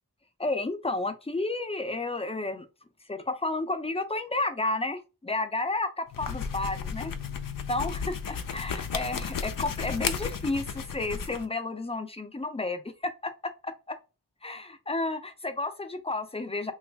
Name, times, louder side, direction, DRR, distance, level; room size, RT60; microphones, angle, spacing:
voice 1, 0.4-2.7 3.1-7.1 7.7-13.3 13.6-14.0 14.4-16.7, left 2 dB, 15° left, 0.5 m, -31 dB
sound 1, 6.1-11.5, left 6 dB, 70° left, 0.5 m, -34 dB
2.9 x 2.4 x 3.3 m
wide cardioid pair, 70°, 35 cm